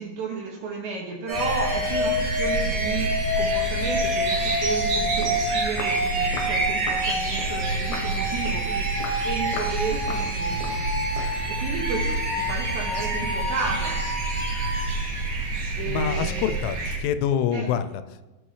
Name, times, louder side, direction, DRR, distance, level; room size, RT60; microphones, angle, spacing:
voice 1, 0.0-10.8 11.6-14.0 15.8-16.4 17.5-17.7, right 4 dB, 75° right, -1 dB, 2.8 m, -32 dB
sound 1, 1.3-14.9, left 1 dB, 10° right, 2.3 m, -29 dB
sound 2, 1.3-17.0, right 2 dB, 60° right, 2.2 m, -28 dB
Walk footsteps, 4.9-5.0 5.2-5.4 5.8-6.0 6.3-6.6 6.9-7.1 7.4-7.6 7.9-8.1 8.5-8.7 9.0-9.2 9.5-9.8 10.1-10.3 10.6-10.8 11.2-11.4, left 5 dB, 75° left, 2.2 m, -37 dB
voice 2, 15.9-18.2, left 9 dB, 90° left, 11 dB, 3.1 m, -26 dB
14.0 x 6.0 x 3.2 m, 1.1 s
omnidirectional pair, 5.5 m